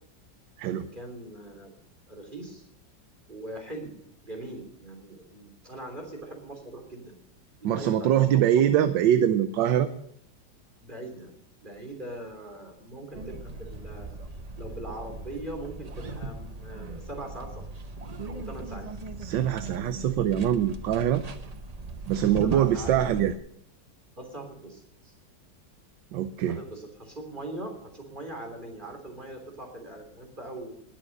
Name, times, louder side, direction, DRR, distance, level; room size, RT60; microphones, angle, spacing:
voice 1, 0.8-1.7 2.1-2.6 3.3-3.9 4.2-7.2 7.6-8.9 10.8-11.3 11.6-14.1 14.6-17.6 18.3-18.9 22.4-22.9 24.2-25.2 26.5-30.7, right 1 dB, 25° right, 1 dB, 3.5 m, -41 dB
voice 2, 7.6-9.9 19.2-21.2 22.1-23.3 26.1-26.6, right 10 dB, 75° right, 10 dB, 1.4 m, -23 dB
sound 1, 13.1-23.4, right 3 dB, 40° right, 0.5 m, -38 dB
21.0 x 7.4 x 6.6 m, 0.70 s
omnidirectional pair, 2.0 m